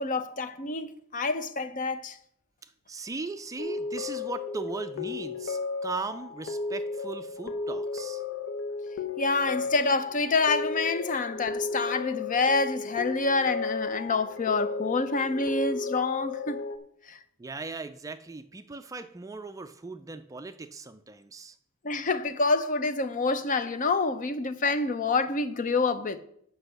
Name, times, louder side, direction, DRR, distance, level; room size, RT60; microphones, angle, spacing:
voice 1, 0.0-2.2 9.2-16.6 17.1-17.2 21.8-26.2, left 3 dB, 40° left, 0.6 m, -27 dB
voice 2, 2.9-8.2 17.4-21.5, right 3 dB, 15° right, 0.4 m, -38 dB
sound 1, 3.6-16.8, left 4 dB, 60° left, 0.9 m, -34 dB
8.2 x 5.4 x 6.6 m
head